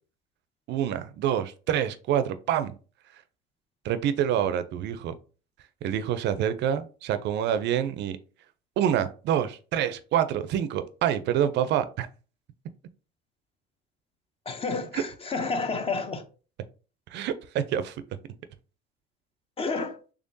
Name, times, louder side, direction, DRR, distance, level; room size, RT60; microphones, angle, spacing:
voice 1, 0.7-2.7 3.8-5.1 5.8-8.2 8.8-12.1 14.9-15.0 17.1-18.0, right 10 dB, 60° right, 0.4 m, -27 dB
voice 2, 14.5-16.2 19.6-20.0, left 4 dB, 30° left, 0.6 m, -30 dB
3.6 x 3.4 x 2.6 m
supercardioid pair, 100°, 20 cm